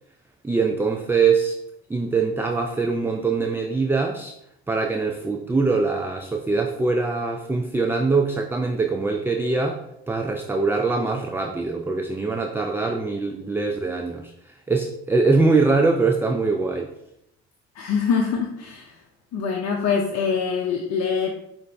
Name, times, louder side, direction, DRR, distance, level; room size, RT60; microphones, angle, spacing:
voice 1, 0.4-1.6 1.9-4.3 4.7-16.9, right 4 dB, 10° right, 3 dB, 0.3 m, -23 dB
voice 2, 17.7-19.0 19.3-21.3, left 6 dB, 60° left, 0 dB, 0.7 m, -24 dB
5.0 x 2.6 x 3.3 m, 0.79 s
supercardioid pair, 65°, 31 cm